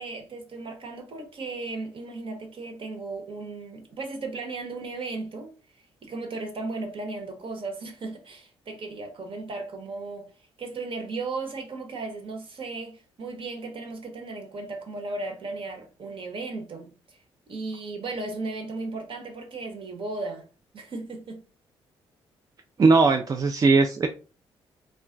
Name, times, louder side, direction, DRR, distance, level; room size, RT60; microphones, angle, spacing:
voice 1, 0.0-10.3 10.6-17.2 17.5-20.5 20.7-21.4, right 3 dB, 55° right, 1.0 m, -36 dB
voice 2, 22.8-24.1, right 3 dB, 35° right, 0.4 m, -19 dB
2.3 x 2.1 x 3.7 m
supercardioid pair, 60°, 11 cm